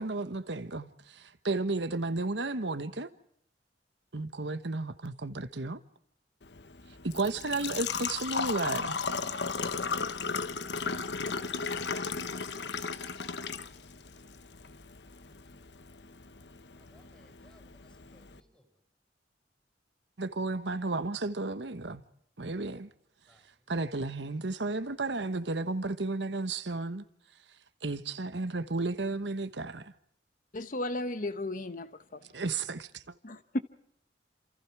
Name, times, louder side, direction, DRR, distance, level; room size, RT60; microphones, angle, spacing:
voice 1, 0.0-3.1 4.1-5.8 7.1-8.9 20.2-22.0 22.4-22.9 23.7-27.0 27.8-29.9 32.3-33.1, right 3 dB, 85° right, 1.2 m, -33 dB
Engine / Trickle dribble / Fill (with liquid), 6.4-18.4, left 5 dB, 75° left, 1.2 m, -36 dB
voice 2, 16.8-18.7 23.3-23.4, equal, 5° left, 5.7 m, -65 dB
voice 3, 30.5-32.2 33.2-33.6, left 1 dB, 50° left, 0.9 m, -34 dB
28.5 x 27.5 x 4.8 m
head